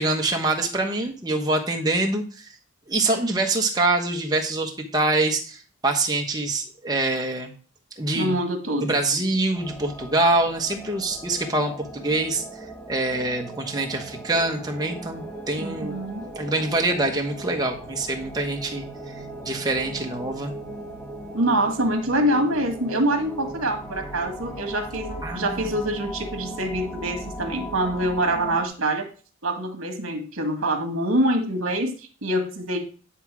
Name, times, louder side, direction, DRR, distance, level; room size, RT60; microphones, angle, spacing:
voice 1, 0.0-2.5 2.9-7.5 8.0-8.4 8.8-12.4 12.9-19.1 19.4-20.5 25.2-25.7, right 2 dB, 20° right, 1 dB, 1.2 m, -25 dB
voice 2, 8.1-8.9 15.6-16.2 21.3-29.1 29.4-32.8, right 1 dB, 70° right, 5 dB, 1.7 m, -25 dB
sound 1, 9.5-28.7, right 1 dB, 5° left, 1.4 m, -38 dB
10.0 x 3.6 x 6.1 m, 0.39 s
head